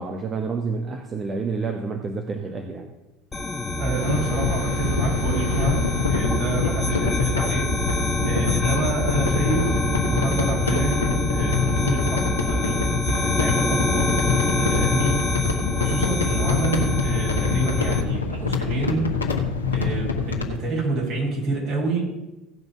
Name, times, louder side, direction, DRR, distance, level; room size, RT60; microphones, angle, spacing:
voice 1, 0.0-2.9, right 4 dB, 30° right, 5 dB, 1.2 m, -29 dB
sound 1, 3.3-18.0, left 1 dB, 20° left, 1.2 m, -25 dB
voice 2, 3.8-7.8 8.2-15.5 15.7-19.2 19.7-22.0, right 2 dB, 55° right, -2 dB, 4.8 m, -28 dB
sound 2, 3.9-20.6, left 4 dB, 85° left, 1.2 m, -26 dB
16.0 x 5.4 x 7.0 m, 1.0 s
figure-of-eight pair, 70°, 0 cm